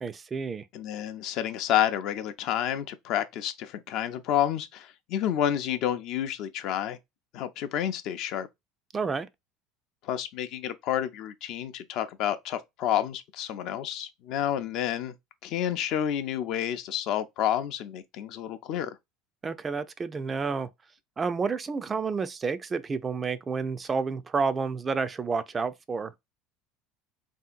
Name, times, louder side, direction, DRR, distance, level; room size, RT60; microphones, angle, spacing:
voice 1, 0.0-0.6 8.9-9.3 19.4-20.7 21.2-26.1, right 5 dB, 25° right, 0.4 m, -30 dB
voice 2, 0.7-7.0 7.3-8.5 10.0-15.1 15.4-19.0, left 10 dB, 60° left, 0.5 m, -29 dB
3.4 x 2.7 x 2.4 m
hypercardioid pair, 75°, 0 cm